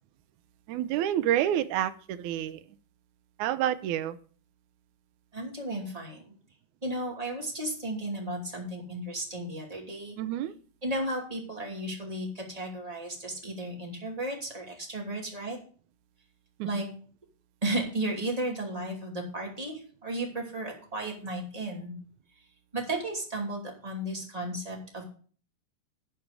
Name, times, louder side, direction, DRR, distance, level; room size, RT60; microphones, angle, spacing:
voice 1, 0.7-2.7 3.4-4.2 10.2-10.5 16.6-16.8, right 11 dB, 75° right, 11 dB, 1.8 m, -28 dB
voice 2, 5.3-6.3 6.8-10.2 10.8-15.6 16.6-16.9 17.6-21.9 22.7-25.0, right 1 dB, 10° right, -1 dB, 2.4 m, -34 dB
11.0 x 5.0 x 8.2 m, 0.43 s
omnidirectional pair, 4.1 m